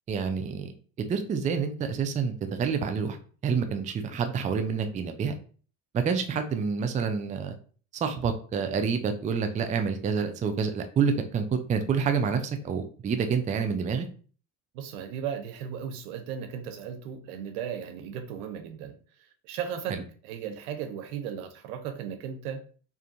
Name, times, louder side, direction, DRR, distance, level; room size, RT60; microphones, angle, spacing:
voice 1, 0.1-0.7 1.0-3.2 3.4-5.4 5.9-7.6 8.0-14.1 19.9-20.0, right 6 dB, 20° right, 0.3 m, -28 dB
voice 2, 14.7-19.0 19.4-22.7, right 8 dB, 85° right, 0.6 m, -36 dB
2.6 x 2.5 x 2.4 m
supercardioid pair, 80°, 43 cm